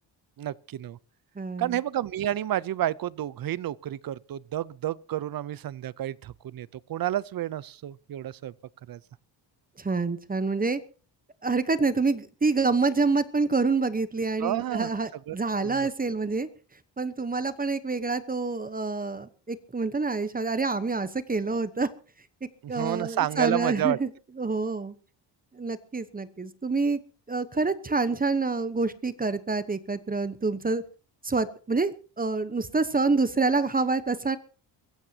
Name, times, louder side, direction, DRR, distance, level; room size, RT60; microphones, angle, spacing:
voice 1, 0.4-1.0 1.6-8.5 8.9-9.0 14.4-14.9 15.3-15.9 22.6-24.0, right 12 dB, 50° right, 0.7 m, -30 dB
voice 2, 1.4-1.8 9.8-10.8 11.4-16.5 17.0-21.9 22.7-24.1 24.4-24.9 25.5-27.0 27.3-30.8 31.2-34.4, right 3 dB, 20° right, 1.0 m, -27 dB
23.5 x 15.5 x 2.9 m
cardioid pair, 115°, 44 cm